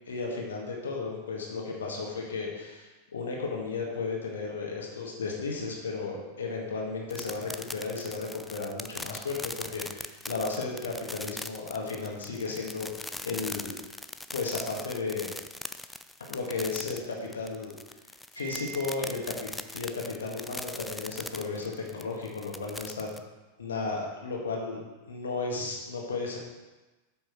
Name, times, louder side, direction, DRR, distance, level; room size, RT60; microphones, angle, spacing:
voice 1, 0.1-13.8 14.3-15.3 16.3-17.7 18.3-23.2 23.6-24.8 25.1-26.4, left 4 dB, 65° left, -1 dB, 1.8 m, -34 dB
sound 1, 7.1-23.2, left 2 dB, 5° left, 0.4 m, -40 dB
Wind chime, 18.4-19.7, right 8 dB, 85° right, 2.3 m, -45 dB
8.0 x 5.6 x 6.0 m, 1.2 s
figure-of-eight pair, 90°, 0 cm